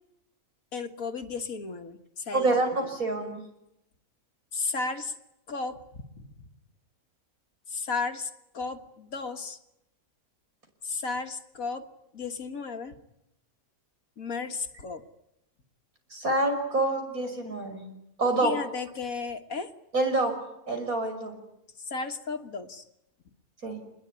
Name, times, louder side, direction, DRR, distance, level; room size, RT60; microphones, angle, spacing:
voice 1, 0.7-2.5 4.5-5.1 5.5-5.8 6.2-6.3 7.7-9.6 10.8-11.9 12.1-12.9 14.2-15.0 18.4-19.7 21.9-22.8, left 4 dB, 65° left, 8 dB, 2.1 m, -34 dB
voice 2, 2.3-3.4 16.1-17.8 18.2-18.5 19.9-20.4 20.7-21.3 23.6-23.8, right 2 dB, 70° right, 4 dB, 6.2 m, -26 dB
27.0 x 21.0 x 9.7 m, 0.84 s
omnidirectional pair, 1.5 m